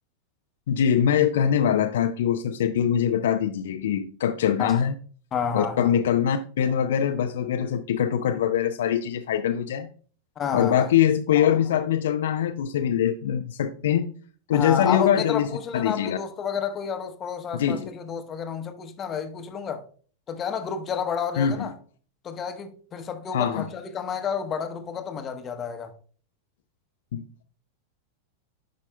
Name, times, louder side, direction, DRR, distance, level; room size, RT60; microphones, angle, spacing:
voice 1, 0.7-4.9 5.5-9.9 10.5-14.1 14.5-16.2 17.5-17.9 21.4-21.7 23.3-23.7 27.1-27.2, left 9 dB, 60° left, 0.4 m, -23 dB
voice 2, 5.3-5.9 10.4-10.9 14.5-19.8 20.3-21.7 22.2-25.9, left 7 dB, 25° left, 0.9 m, -30 dB
10.0 x 5.4 x 2.2 m
figure-of-eight pair, 90°, 0 cm